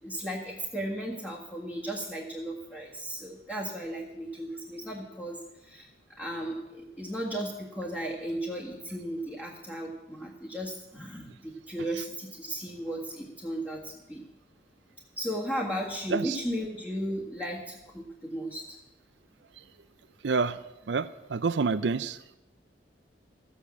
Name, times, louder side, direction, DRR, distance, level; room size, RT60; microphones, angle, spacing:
voice 1, 0.0-5.9 6.2-14.2 15.2-18.8, right 1 dB, 10° left, -5 dB, 1.8 m, -35 dB
voice 2, 20.2-20.6 20.9-22.2, right 4 dB, 80° right, 12 dB, 0.5 m, -28 dB
14.5 x 8.4 x 7.3 m, 0.98 s
head